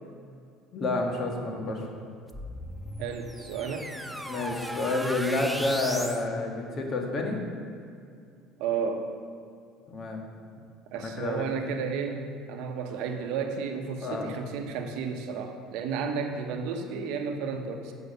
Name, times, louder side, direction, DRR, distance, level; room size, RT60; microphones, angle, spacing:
voice 1, 0.7-1.9 4.2-7.4 9.9-10.2 10.9-11.4 14.0-14.4, left 2 dB, 45° left, 1 dB, 1.5 m, -29 dB
sound 1, 2.3-6.2, equal, 5° right, 0.5 m, -36 dB
voice 2, 3.0-3.9 8.6-9.0 10.9-17.9, right 5 dB, 75° right, 5 dB, 0.8 m, -32 dB
8.1 x 4.7 x 6.6 m, 2.3 s
supercardioid pair, 100°, 0 cm